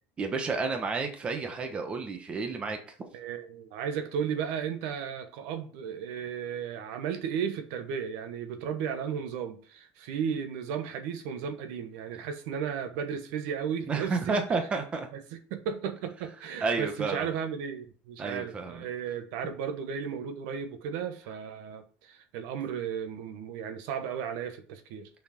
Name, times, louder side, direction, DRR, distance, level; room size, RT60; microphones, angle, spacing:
voice 1, 0.2-3.0 13.9-15.1 16.6-17.3 18.2-18.9, right 4 dB, 20° right, 1.1 m, -31 dB
voice 2, 3.1-14.4 15.3-25.1, right 7 dB, 70° right, 1.1 m, -34 dB
6.0 x 4.6 x 5.8 m
cardioid pair, 160°, 5 cm